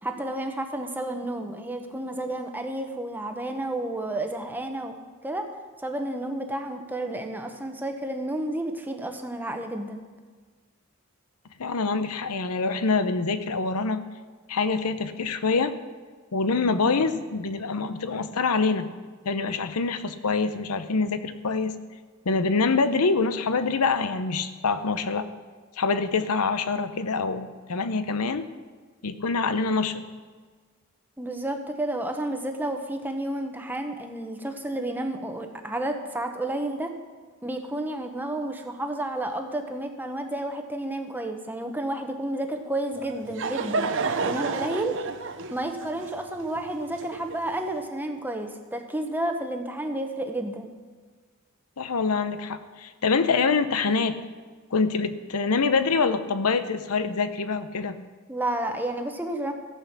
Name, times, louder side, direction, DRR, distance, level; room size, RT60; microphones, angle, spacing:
voice 1, 0.0-5.0 5.2-5.5 5.8-10.0 31.2-36.9 37.4-43.9 44.2-45.0 45.5-50.7 58.3-59.5, right 1 dB, 10° right, 4 dB, 1.0 m, -31 dB
voice 2, 11.6-14.0 14.5-15.7 16.3-18.9 19.2-21.7 22.2-25.3 25.8-28.4 29.0-30.0 51.8-54.2 54.7-58.0, left 4 dB, 80° left, 11 dB, 0.8 m, -25 dB
Laughter / Crowd, 43.0-47.6, right 4 dB, 55° right, 0.7 m, -30 dB
14.0 x 8.2 x 6.0 m, 1.5 s
head